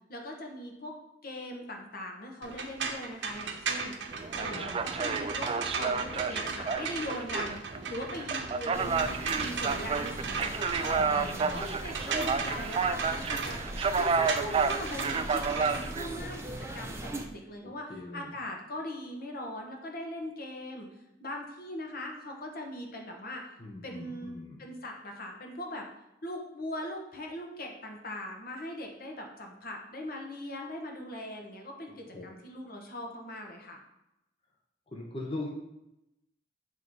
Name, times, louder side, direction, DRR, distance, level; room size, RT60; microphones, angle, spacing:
voice 1, 0.1-0.9 1.2-3.9 4.3-7.6 7.9-9.1 9.3-20.9 21.2-23.4 23.8-25.8 26.2-33.8, left 1 dB, 55° left, 2 dB, 1.2 m, -40 dB
sound 1, 2.4-16.6, right 5 dB, 75° right, 0.8 m, -37 dB
sound 2, 4.1-16.2, right 5 dB, 30° right, 0.3 m, -31 dB
voice 2, 4.3-4.9 10.9-11.7 17.6-18.4 23.6-24.6 31.9-32.2 34.9-35.5, left 2 dB, 30° left, -1 dB, 0.8 m, -42 dB
sound 3, 8.7-17.3, right 1 dB, 15° right, 0.7 m, -40 dB
8.3 x 3.1 x 5.4 m, 0.88 s
head